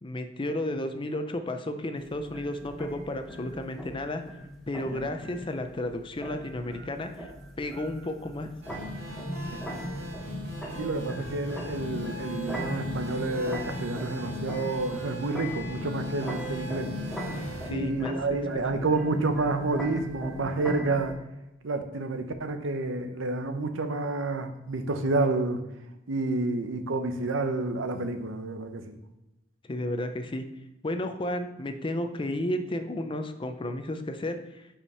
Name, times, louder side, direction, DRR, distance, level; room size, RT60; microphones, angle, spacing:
voice 1, 0.0-4.2 4.7-7.3 7.6-8.5 17.7-18.9 29.6-30.4 30.8-34.7, left 1 dB, 25° left, 7 dB, 0.5 m, -33 dB
sound 1, 2.0-21.1, equal, ahead, 1.1 m, -39 dB
sound 2, 8.6-17.7, left 1 dB, 55° right, 2.5 m, -38 dB
voice 2, 10.8-16.9 17.7-21.1 21.6-25.6 26.1-29.0, right 3 dB, 80° right, 8 dB, 0.7 m, -29 dB
5.4 x 5.0 x 5.5 m, 0.95 s
head